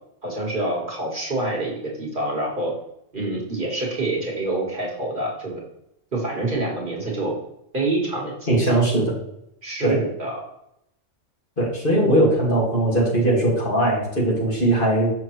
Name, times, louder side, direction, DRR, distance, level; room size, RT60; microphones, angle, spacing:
voice 1, 0.2-2.7 3.1-5.6 6.1-7.3 7.7-8.8 9.6-10.4, right 2 dB, 45° right, -3 dB, 1.8 m, -26 dB
voice 2, 8.5-9.1 9.8-10.0 11.6-15.1, right 1 dB, 45° left, -4 dB, 2.3 m, -20 dB
6.7 x 5.8 x 3.2 m, 0.79 s
omnidirectional pair, 1.3 m